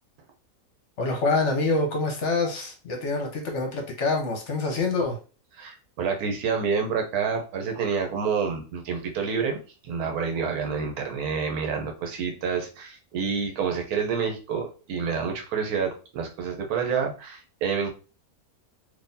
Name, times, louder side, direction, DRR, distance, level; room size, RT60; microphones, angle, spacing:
voice 1, 1.0-5.2, left 3 dB, 60° left, 2 dB, 1.0 m, -26 dB
voice 2, 5.6-9.6 9.8-17.9, right 6 dB, 80° right, 3 dB, 1.2 m, -28 dB
3.8 x 2.8 x 2.6 m, 0.34 s
omnidirectional pair, 1.6 m